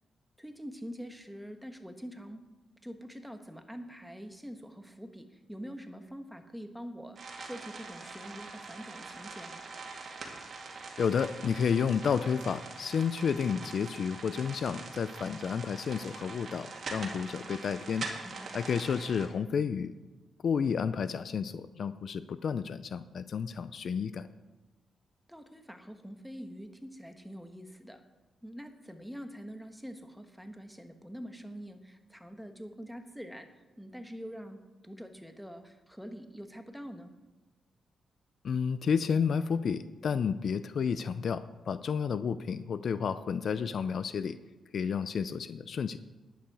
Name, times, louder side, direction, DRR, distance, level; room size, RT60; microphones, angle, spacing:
voice 1, 0.4-2.5 2.8-9.7 18.2-18.6 25.3-28.0 28.4-37.1, equal, ahead, 6 dB, 1.2 m, -45 dB
sound 1, 7.2-19.3, right 4 dB, 55° right, 2.2 m, -43 dB
voice 2, 11.0-18.1 18.5-19.9 20.4-24.3 38.4-44.4 44.7-46.0, left 6 dB, 60° left, 13 dB, 0.4 m, -31 dB
10.5 x 9.3 x 4.8 m, 1.1 s
cardioid pair, 95°, 0 cm